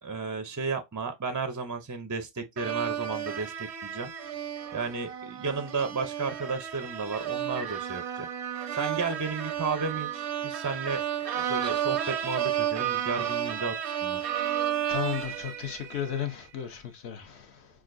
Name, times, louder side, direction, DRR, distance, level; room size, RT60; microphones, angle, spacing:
voice 1, 0.0-4.1 4.7-8.3 8.7-11.0 11.3-14.2, right 4 dB, 30° right, 0.3 m, -33 dB
sound 1, 2.6-16.3, right 10 dB, 85° right, 0.9 m, -32 dB
voice 2, 14.2-17.7, left 9 dB, 75° left, 1.1 m, -35 dB
6.2 x 2.3 x 2.5 m
omnidirectional pair, 1.1 m